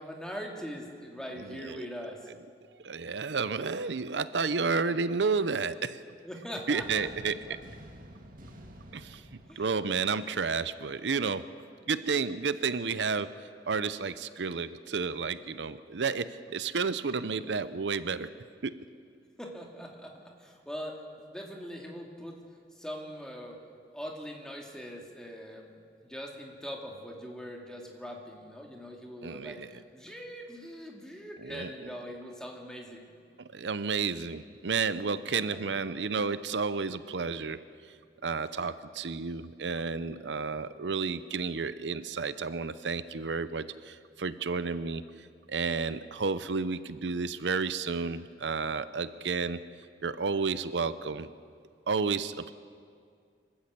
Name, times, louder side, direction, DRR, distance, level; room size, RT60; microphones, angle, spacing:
voice 1, 0.0-2.3 6.2-7.6 9.5-9.7 19.4-22.4 22.7-23.6 23.9-25.7 26.0-33.1 35.3-35.4 38.5-38.6, equal, 5° left, 0 dB, 2.5 m, -42 dB
voice 2, 1.3-1.9 2.8-6.0 6.7-7.6 8.9-9.2 9.6-11.5 11.9-13.4 13.7-18.3 18.6-18.8 29.2-29.7 31.4-31.7 33.4-37.6 38.2-49.6 50.0-51.3 51.9-52.5, right 5 dB, 90° right, 14 dB, 0.7 m, -31 dB
sound 1, 6.8-10.8, equal, 50° right, 2.1 m, -50 dB
26.0 x 13.0 x 8.2 m, 2.2 s
head